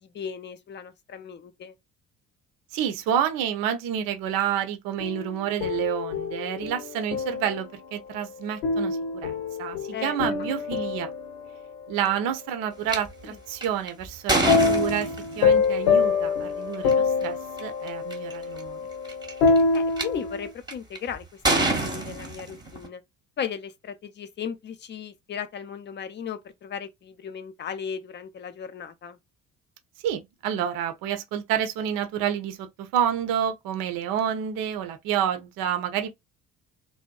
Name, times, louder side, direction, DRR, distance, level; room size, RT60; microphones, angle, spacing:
voice 1, 0.0-1.7 9.9-10.4 13.2-13.4 19.7-21.4 21.7-23.0 23.4-29.2, left 7 dB, 25° left, 0.4 m, -36 dB
voice 2, 2.7-9.3 9.6-11.1 11.9-15.1 15.4-18.8 30.0-36.1, right 9 dB, 50° right, 0.6 m, -29 dB
sound 1, 5.0-7.7 8.6-12.0 14.5-20.5, left 4 dB, 70° left, 0.8 m, -25 dB
sound 2, 12.9-13.0 13.6-15.5 16.7-16.9 17.6-17.7 17.9-18.3 19.0-20.0 20.7-21.0 21.4-22.9, right 2 dB, 10° right, 0.8 m, -26 dB
2.7 x 2.2 x 2.2 m
figure-of-eight pair, 50°, 44 cm